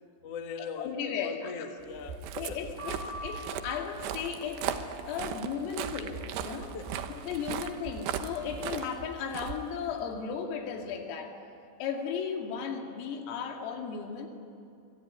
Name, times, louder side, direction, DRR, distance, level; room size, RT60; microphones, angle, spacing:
voice 1, 0.2-2.7 6.7-7.0, left 6 dB, 70° left, 5 dB, 1.4 m, -41 dB
voice 2, 0.8-1.7 2.3-4.6 5.1-6.8 7.1-11.3 11.8-14.3, left 7 dB, 90° left, 3 dB, 5.0 m, -35 dB
Walk footsteps, 1.9-10.2, right 8 dB, 70° right, 3.0 m, -38 dB
sound 1, 2.8-4.1, equal, 15° left, 6.3 m, -43 dB
25.5 x 23.5 x 9.6 m, 2.6 s
omnidirectional pair, 5.8 m